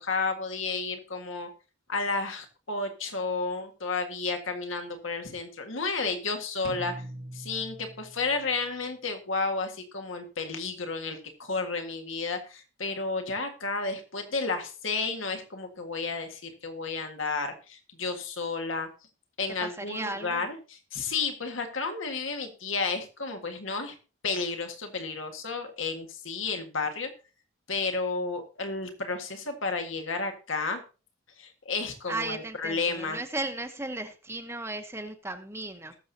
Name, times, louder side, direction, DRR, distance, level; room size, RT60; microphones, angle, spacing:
voice 1, 0.0-1.5 1.9-7.0 7.3-18.9 19.4-24.0 24.2-27.1 27.7-30.8 31.4-33.2, left 4 dB, 75° left, 5 dB, 1.7 m, -32 dB
sound 1, 6.6-8.6, right 1 dB, 90° right, 1.6 m, -42 dB
voice 2, 19.6-20.5 32.1-35.9, right 2 dB, 15° right, 5 dB, 0.9 m, -35 dB
20.0 x 7.0 x 2.8 m, 0.34 s
head